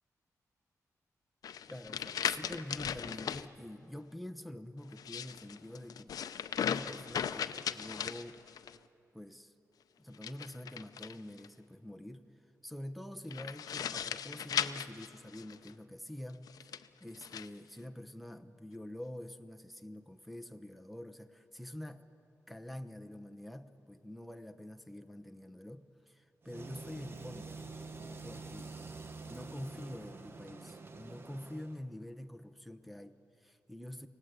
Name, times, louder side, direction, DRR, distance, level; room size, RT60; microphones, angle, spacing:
sound 1, 1.4-3.5 4.9-8.8 10.1-11.5 13.3-15.7 16.5-17.5, left 8 dB, 85° left, 0.6 m, -38 dB
voice 1, 1.7-6.2 6.6-8.4 9.1-9.5 10.0-12.3 12.6-22.2 22.5-27.7 28.2-28.8 29.3-34.1, left 1 dB, ahead, 6 dB, 1.0 m, -46 dB
sound 2, 26.4-31.8, right 3 dB, 40° right, 1.3 m, -47 dB
28.5 x 18.0 x 8.2 m, 2.9 s
wide cardioid pair, 105°, 6 cm